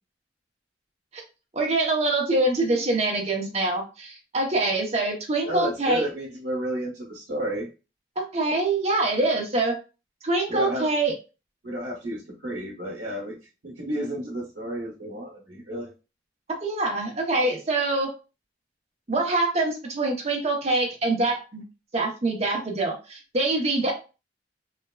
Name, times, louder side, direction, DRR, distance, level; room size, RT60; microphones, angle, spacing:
voice 1, 1.5-6.0 8.2-9.8 10.2-11.1 16.6-18.1 19.1-21.6 21.9-23.9, right 2 dB, 35° right, 1 dB, 0.7 m, -24 dB
voice 2, 5.4-7.7 10.5-10.9 11.6-13.4 13.6-15.9, right 1 dB, 85° right, -5 dB, 0.9 m, -31 dB
3.2 x 2.2 x 2.3 m, 0.31 s
head